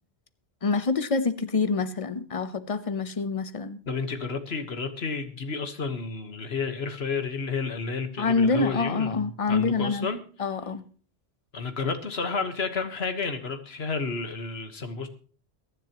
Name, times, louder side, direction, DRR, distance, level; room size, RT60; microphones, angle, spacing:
voice 1, 0.6-3.8 8.2-10.1 10.4-10.8, left 4 dB, 35° left, 0.9 m, -26 dB
voice 2, 3.9-10.2 11.5-15.1, left 4 dB, 70° left, 1.7 m, -31 dB
22.5 x 10.5 x 3.0 m
omnidirectional pair, 1.1 m